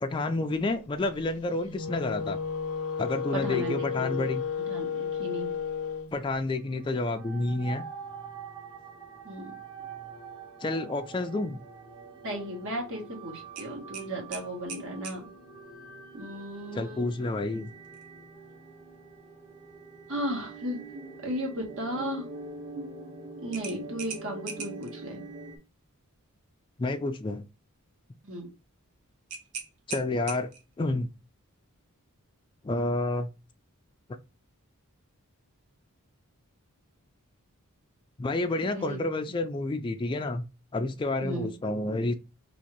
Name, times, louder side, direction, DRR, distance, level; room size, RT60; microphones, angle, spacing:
voice 1, 0.0-2.4 3.0-4.4 6.1-7.8 10.6-11.6 16.7-17.7 26.8-27.4 29.9-31.1 32.6-33.3 38.2-40.4 40.7-42.1, left 2 dB, 20° left, 0.3 m, -29 dB
Wind instrument woodwind instrument, 1.6-6.1, left 6 dB, 75° left, 0.6 m, -32 dB
voice 2, 3.3-4.2 4.7-5.6 9.2-9.5 12.2-15.3 16.1-17.1 20.1-20.8 21.2-22.3 23.4-25.2 28.2-28.5 38.6-39.0 41.2-41.5, right 1 dB, 60° right, 1.3 m, -35 dB
sound 1, 6.7-25.6, right 3 dB, 20° right, 0.7 m, -45 dB
sound 2, 13.6-15.2 17.8-18.1 18.5-18.6 23.5-24.9 29.3-30.7, right 6 dB, 85° right, 0.8 m, -40 dB
2.8 x 2.7 x 4.4 m
head